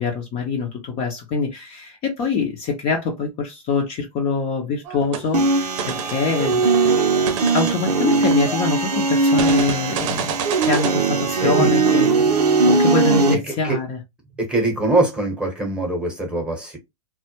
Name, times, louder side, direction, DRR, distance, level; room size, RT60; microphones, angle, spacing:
voice 1, 0.0-6.6 7.5-10.3 10.6-12.3 12.7-14.0, left 4 dB, 30° left, 0.6 m, -24 dB
sound 1, 4.9-5.3 5.7-8.7 9.4-10.9, right 7 dB, 50° right, 0.7 m, -29 dB
sound 2, 5.3-13.3, right 3 dB, 90° right, 0.5 m, -19 dB
voice 2, 11.4-11.7 13.6-13.8 14.4-16.8, right 2 dB, 5° right, 0.9 m, -22 dB
2.2 x 2.0 x 2.9 m
hypercardioid pair, 120°, 20 cm